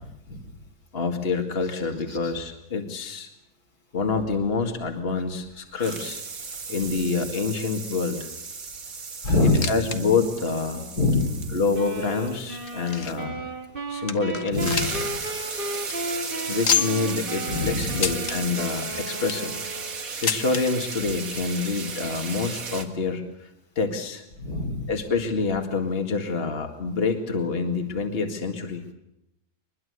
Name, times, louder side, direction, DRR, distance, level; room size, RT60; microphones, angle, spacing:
voice 1, 0.9-3.3 3.9-6.2 6.7-8.2 9.4-10.9 11.5-13.4 13.9-15.1 16.5-19.6 20.2-23.5 23.8-24.2 24.9-28.8, left 4 dB, 40° left, 4 dB, 2.2 m, -27 dB
sound 1, 4.3-5.5 5.8-13.2 14.2-14.3 14.5-22.8, right 4 dB, 60° right, 2.3 m, -35 dB
voice 2, 9.2-9.6 11.0-11.6 14.5-14.8 17.5-18.0 24.4-24.9, left 2 dB, 70° left, 5 dB, 3.7 m, -24 dB
sound 2, 9.3-10.0 10.3-10.4 11.0-11.1 11.9-13.3 13.8-13.9 14.1-15.1 15.4-15.5 15.8-15.9 16.6-17.1 18.0-18.4 19.0-19.5 20.2-20.6 21.6-21.7 21.9-22.0 22.8-22.9, left 7 dB, 55° left, 1.7 m, -28 dB
sound 3, 11.7-20.1, right 1 dB, 35° right, 2.2 m, -35 dB
23.5 x 21.5 x 8.2 m, 0.83 s
omnidirectional pair, 1.7 m